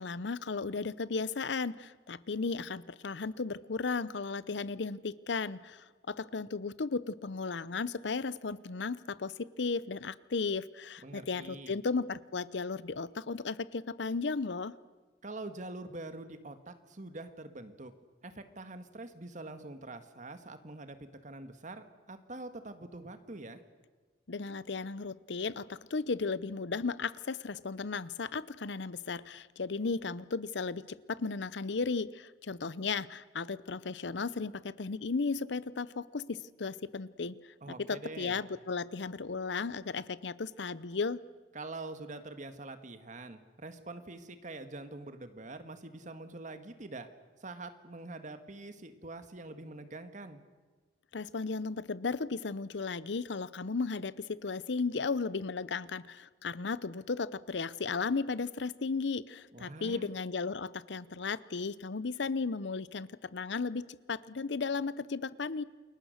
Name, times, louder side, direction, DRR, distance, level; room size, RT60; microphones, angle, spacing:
voice 1, 0.0-14.7 24.3-37.4 37.9-41.2 51.1-65.6, left 4 dB, 75° left, 18 dB, 0.7 m, -35 dB
voice 2, 11.0-11.8 15.2-17.9 18.2-23.6 37.6-38.4 41.5-47.1 47.4-50.4 59.5-60.0, right 2 dB, 45° right, 9 dB, 1.6 m, -45 dB
29.0 x 22.0 x 6.5 m, 1.3 s
head